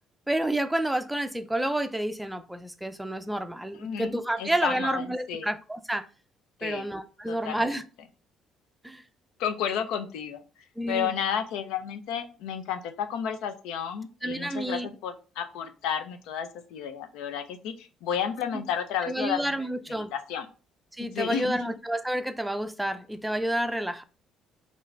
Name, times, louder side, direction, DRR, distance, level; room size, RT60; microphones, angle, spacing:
voice 1, 0.3-6.1 6.6-7.8 8.8-9.0 10.8-11.1 14.2-14.9 18.5-18.6 19.1-20.1 21.0-24.0, right 1 dB, 5° right, 0.4 m, -29 dB
voice 2, 3.7-4.1 4.4-5.5 6.6-6.9 7.3-7.8 9.4-10.4 10.9-20.5 21.0-21.7, left 8 dB, 85° left, 0.5 m, -32 dB
3.6 x 2.5 x 3.2 m
cardioid pair, 100°, 0 cm